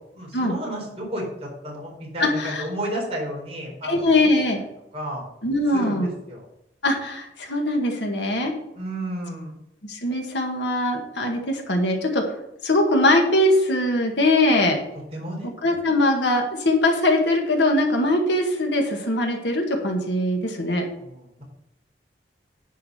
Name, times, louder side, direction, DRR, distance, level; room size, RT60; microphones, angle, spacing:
voice 1, 0.1-4.0 4.9-5.2 5.7-6.0 6.3-6.4 8.7-9.5 15.1-15.5 21.0-21.4, right 1 dB, 35° right, -3 dB, 4.3 m, -32 dB
voice 2, 2.2-2.6 3.8-4.6 5.4-6.1 6.8-8.5 9.9-12.4 12.6-14.8 15.6-20.9, left 1 dB, 85° left, 2 dB, 1.9 m, -21 dB
10.5 x 4.8 x 6.6 m, 0.81 s
head